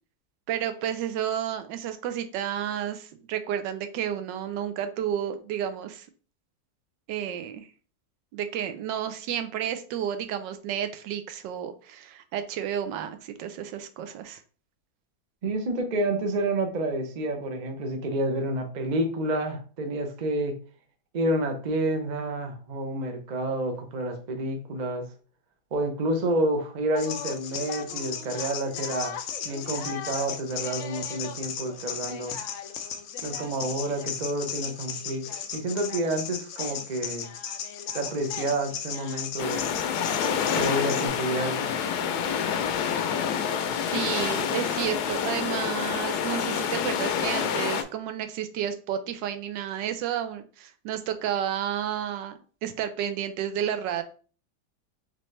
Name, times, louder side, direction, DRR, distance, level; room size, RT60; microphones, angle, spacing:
voice 1, 0.5-6.1 7.1-7.7 8.3-14.4 43.9-54.0, right 9 dB, 90° right, 9 dB, 1.3 m, -31 dB
voice 2, 15.4-20.6 21.1-25.1 25.7-29.2 29.4-32.4 33.2-35.2 35.5-37.3 37.9-39.7 40.5-41.8, right 1 dB, 65° right, 4 dB, 0.4 m, -29 dB
sound 1, 26.9-41.1, left 8 dB, 90° left, 0.6 m, -36 dB
sound 2, 39.4-47.8, left 8 dB, 75° left, 1.0 m, -27 dB
3.9 x 3.2 x 3.2 m, 0.39 s
omnidirectional pair, 1.9 m